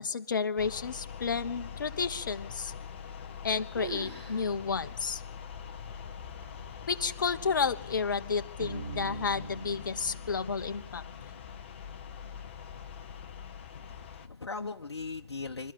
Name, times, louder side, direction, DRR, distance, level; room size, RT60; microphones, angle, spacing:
voice 1, 0.0-2.7 3.4-5.2 6.9-11.0, left 5 dB, 45° left, 11 dB, 1.1 m, -31 dB
sound 1, 0.6-14.3, left 7 dB, 25° left, 1.0 m, -44 dB
sound 2, 3.0-3.5 3.7-4.5 4.8-4.9 5.6-5.7 6.4-6.8, right 5 dB, 20° right, 4.3 m, -43 dB
sound 3, 8.6-12.1, right 3 dB, 40° right, 7.8 m, -44 dB
voice 2, 13.7-15.7, left 4 dB, 65° left, 3 dB, 1.1 m, -39 dB
26.0 x 13.0 x 8.7 m, 0.84 s
figure-of-eight pair, 155°, 14 cm